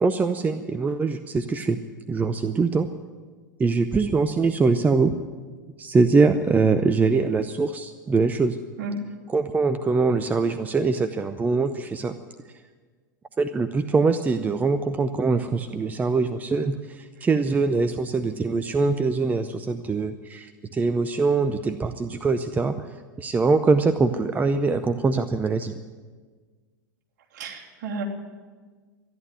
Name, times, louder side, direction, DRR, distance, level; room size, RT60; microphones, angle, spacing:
voice 1, 0.0-1.8 2.1-2.9 3.6-5.1 5.8-8.6 9.3-12.1 13.4-22.8 23.2-25.8, right 4 dB, 15° right, 10 dB, 0.6 m, -23 dB
voice 2, 27.4-28.0, right 4 dB, 55° right, -2 dB, 3.2 m, -32 dB
14.0 x 11.0 x 9.1 m, 1.5 s
figure-of-eight pair, 90°, 10 cm